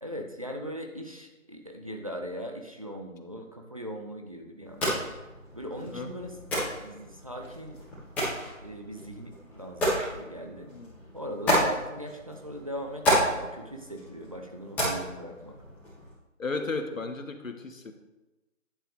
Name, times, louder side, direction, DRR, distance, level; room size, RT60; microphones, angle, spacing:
voice 1, 0.0-5.1 5.5-6.4 6.8-7.8 8.6-10.7 11.1-15.6, equal, 25° right, 3 dB, 0.6 m, -40 dB
sound 1, 4.6-16.1, equal, 5° left, 1.7 m, -32 dB
voice 2, 16.4-17.9, left 3 dB, 75° left, 7 dB, 1.4 m, -34 dB
11.0 x 7.3 x 3.4 m, 1.1 s
figure-of-eight pair, 165°, 40 cm